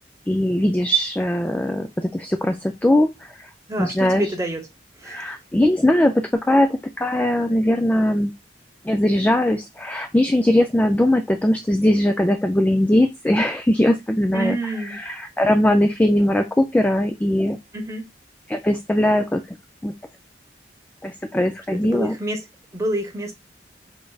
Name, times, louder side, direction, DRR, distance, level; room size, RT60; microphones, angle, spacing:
voice 1, 0.3-3.5 3.8-4.3 5.1-8.3 8.8-17.6 18.5-19.6 19.8-19.9 21.0-22.2, left 1 dB, 10° left, 0.3 m, -20 dB
voice 2, 3.7-4.7 5.0-5.3 14.3-15.0 17.7-18.1 21.7-22.4 22.7-23.3, right 1 dB, 20° right, 0.9 m, -27 dB
5.1 x 3.3 x 2.3 m
head